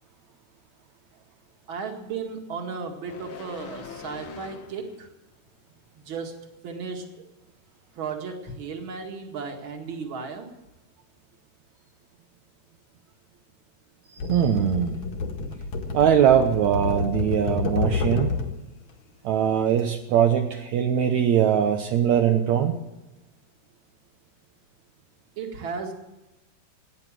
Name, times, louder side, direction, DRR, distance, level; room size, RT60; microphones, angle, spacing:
voice 1, 1.7-5.1 6.0-6.3 6.6-7.2 8.0-10.5 25.4-25.9, right 5 dB, 40° right, 3 dB, 2.2 m, -35 dB
sound 1, 3.1-5.1 5.5-5.7, left 6 dB, 70° left, 1.2 m, -42 dB
voice 2, 14.1-15.0 15.9-18.4 19.2-22.8, right 9 dB, 70° right, 4 dB, 1.8 m, -21 dB
sound 2, 14.2-18.6 19.7-19.9, left 3 dB, 55° left, 2.5 m, -29 dB
18.5 x 9.9 x 7.6 m, 1.0 s
omnidirectional pair, 4.4 m